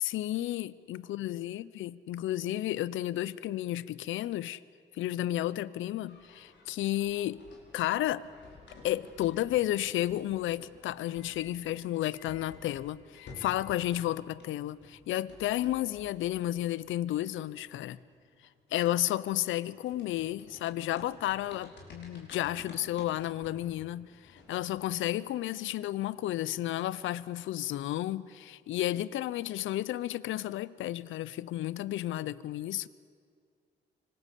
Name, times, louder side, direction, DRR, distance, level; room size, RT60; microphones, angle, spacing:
voice 1, 0.0-4.6 4.9-7.4 7.7-8.3 8.8-18.0 18.7-32.9, left 14 dB, 80° left, 0.7 m, -32 dB
sound 1, 6.1-14.1 14.3-24.9, left 3 dB, 65° left, 4.9 m, -54 dB
24.5 x 19.5 x 8.4 m
cardioid pair, 90°, 20 cm